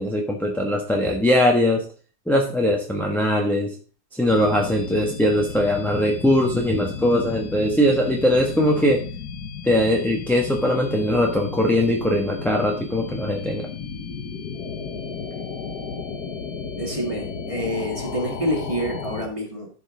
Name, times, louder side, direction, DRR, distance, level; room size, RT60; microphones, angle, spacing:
voice 1, 0.0-1.9 2.3-3.7 4.1-9.0 9.6-13.7, left 1 dB, ahead, 0 dB, 0.9 m, -21 dB
sound 1, 4.3-19.3, left 5 dB, 65° left, 1.7 m, -34 dB
voice 2, 16.8-19.7, equal, 20° right, 1 dB, 2.0 m, -27 dB
12.5 x 5.4 x 3.8 m, 0.37 s
omnidirectional pair, 1.9 m